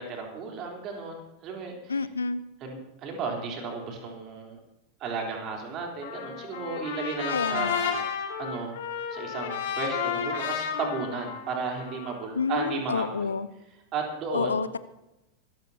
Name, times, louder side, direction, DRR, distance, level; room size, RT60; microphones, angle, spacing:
voice 1, 0.0-2.0 2.6-4.6 5.0-8.7 9.1-13.3 13.9-14.6, right 4 dB, 35° right, 1 dB, 3.7 m, -34 dB
voice 2, 1.9-2.4 7.3-7.8 12.4-13.5 14.3-14.8, left 4 dB, 75° left, 15 dB, 0.7 m, -29 dB
Trumpet, 6.0-12.3, left 8 dB, 55° left, 2.8 m, -32 dB
24.0 x 14.5 x 2.9 m, 0.92 s
figure-of-eight pair, 90°, 0 cm